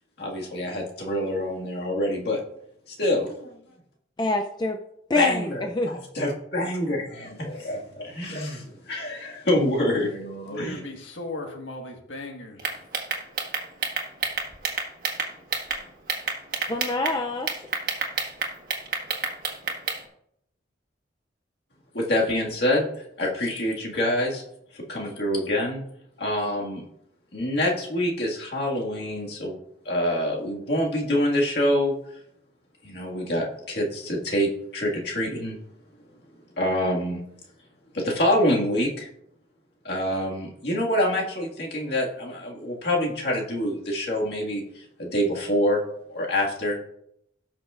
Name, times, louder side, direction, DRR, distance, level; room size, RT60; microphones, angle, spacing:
voice 1, 0.2-2.4 2.9-3.5 5.1-10.8 21.9-22.9 23.2-24.4 24.7-25.8 26.2-26.8 27.3-29.6 29.9-32.0 32.8-35.6 36.6-37.2 37.9-39.1 39.8-45.8 46.1-46.8, left 1 dB, 55° left, -2 dB, 1.9 m, -26 dB
voice 2, 4.2-4.8 5.1-6.0 16.7-17.5, left 2 dB, 25° left, 4 dB, 0.4 m, -26 dB
voice 3, 10.5-12.8, left 2 dB, 85° left, 3 dB, 1.6 m, -37 dB
sound 1, 12.6-15.8 16.1-17.2 17.5-20.0, right 5 dB, 50° right, 1.5 m, -28 dB
17.5 x 6.2 x 2.5 m, 0.76 s
head